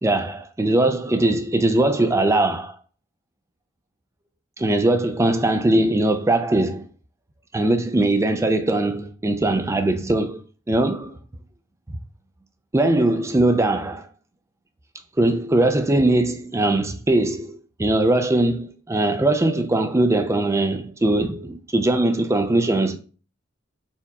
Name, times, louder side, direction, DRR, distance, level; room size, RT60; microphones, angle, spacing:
voice 1, 0.0-2.8 4.6-6.9 7.5-10.4 10.7-11.1 12.7-14.1 15.2-23.0, right 2 dB, 15° right, 0.3 m, -20 dB
4.4 x 2.4 x 4.0 m
head